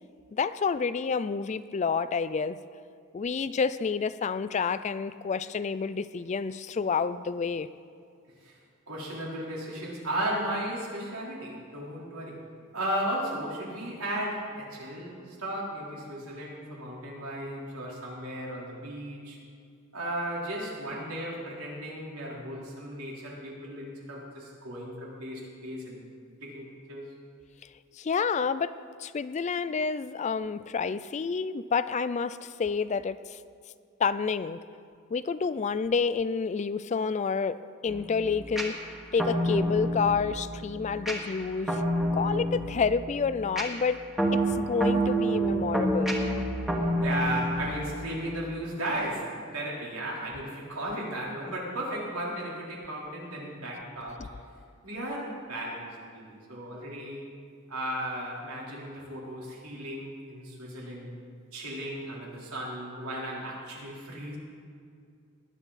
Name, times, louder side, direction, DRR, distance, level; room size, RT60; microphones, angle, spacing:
voice 1, 0.3-2.6 3.1-7.7 28.0-28.7 29.0-33.4 34.0-34.6 35.1-38.8 39.1-41.8 42.1-44.0 44.3-46.2, left 5 dB, 30° left, 15 dB, 0.3 m, -29 dB
voice 2, 8.9-12.4 12.7-19.4 19.9-26.0 26.4-27.0 47.0-54.3 54.8-57.2 57.7-61.1 61.5-64.4, right 1 dB, 80° right, -4 dB, 3.9 m, -35 dB
sound 1, 37.9-48.5, right 1 dB, ahead, 1.6 m, -29 dB
20.0 x 11.0 x 4.2 m, 2.3 s
head